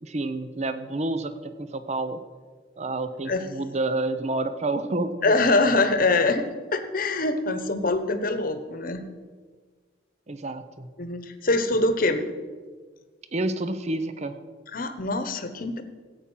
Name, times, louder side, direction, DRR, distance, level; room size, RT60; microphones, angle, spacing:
voice 1, 0.0-2.2 2.8-5.3 10.3-10.9 13.3-14.4, right 2 dB, 35° right, 11 dB, 0.7 m, -29 dB
voice 2, 5.2-6.5 6.7-9.0 11.0-12.2 14.7-15.8, left 2 dB, 50° left, 10 dB, 1.1 m, -24 dB
15.0 x 8.8 x 5.6 m, 1.5 s
head